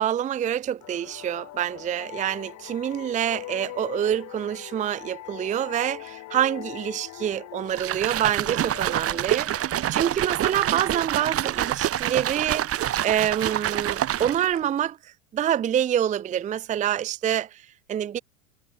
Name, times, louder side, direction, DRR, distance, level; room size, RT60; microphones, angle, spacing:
voice 1, 0.0-12.7 13.0-18.2, right 10 dB, 20° right, 0.7 m, -27 dB
sound 1, 0.8-10.2, left 16 dB, 45° left, 6.1 m, -41 dB
sound 2, 7.7-14.6, right 12 dB, 35° right, 3.4 m, -27 dB
hypercardioid pair, 90°, 40 cm